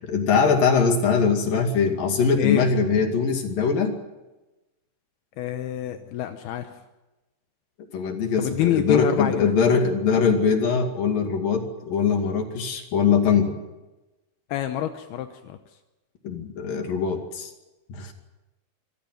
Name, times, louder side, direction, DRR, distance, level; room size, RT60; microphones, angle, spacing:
voice 1, 0.1-4.0 7.9-13.5 16.2-17.5 17.9-18.1, left 5 dB, 60° left, 4 dB, 3.9 m, -22 dB
voice 2, 2.3-2.7 5.4-6.8 8.4-9.5 14.5-15.6, left 11 dB, 75° left, 7 dB, 2.9 m, -27 dB
26.0 x 16.0 x 9.4 m, 1.1 s
omnidirectional pair, 4.6 m